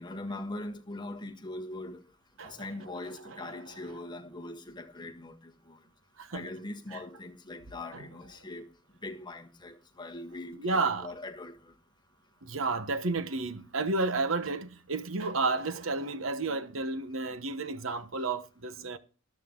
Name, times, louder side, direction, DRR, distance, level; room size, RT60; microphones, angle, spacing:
voice 1, 0.0-2.0 2.4-5.8 6.3-8.7 9.0-11.7, left 2 dB, 20° left, 1.5 m, -41 dB
voice 2, 6.2-6.5 6.9-7.0 7.9-8.1 10.6-11.1 12.4-19.0, right 3 dB, 80° right, 1.1 m, -31 dB
13.5 x 12.0 x 3.8 m
head